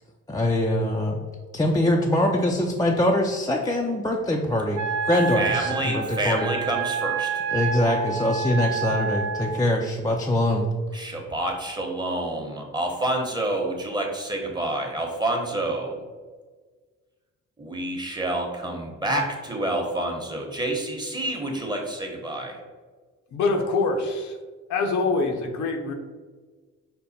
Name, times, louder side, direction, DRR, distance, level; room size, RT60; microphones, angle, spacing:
voice 1, 0.3-1.2 1.5-6.5 7.5-10.7, left 1 dB, 15° left, 0 dB, 0.4 m, -23 dB
Wind instrument woodwind instrument, 4.7-9.6, right 6 dB, 90° right, 0.5 m, -28 dB
voice 2, 5.3-7.4 10.9-16.0 17.6-22.6, right 1 dB, 15° right, 1 dB, 0.9 m, -28 dB
voice 3, 23.3-24.4 24.7-25.9, left 3 dB, 75° left, 3 dB, 0.8 m, -24 dB
5.4 x 2.1 x 4.1 m, 1.4 s
cardioid pair, 90°, 30 cm